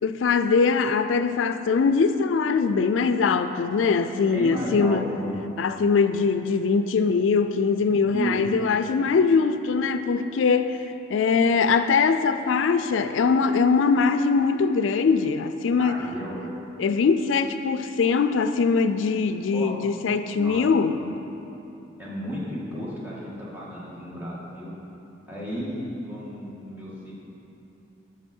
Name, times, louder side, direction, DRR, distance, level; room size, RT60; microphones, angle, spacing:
voice 1, 0.0-5.1 5.6-16.0 16.8-21.0, left 5 dB, 85° left, 10 dB, 0.4 m, -22 dB
voice 2, 4.3-5.4 8.1-8.4 15.8-16.4 19.5-19.7 20.3-20.7 22.0-24.8 25.3-27.1, equal, 10° right, -7 dB, 1.8 m, -33 dB
11.5 x 6.0 x 4.4 m, 3.0 s
head